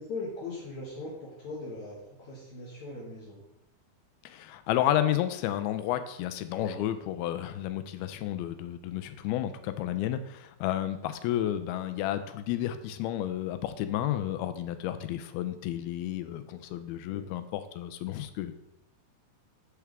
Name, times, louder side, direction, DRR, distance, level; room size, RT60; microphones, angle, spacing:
voice 1, 0.0-3.4 17.1-17.2, left 2 dB, 55° left, -5 dB, 2.7 m, -40 dB
voice 2, 4.2-18.6, left 12 dB, 85° left, 11 dB, 2.5 m, -31 dB
14.0 x 4.7 x 3.5 m, 0.84 s
omnidirectional pair, 4.4 m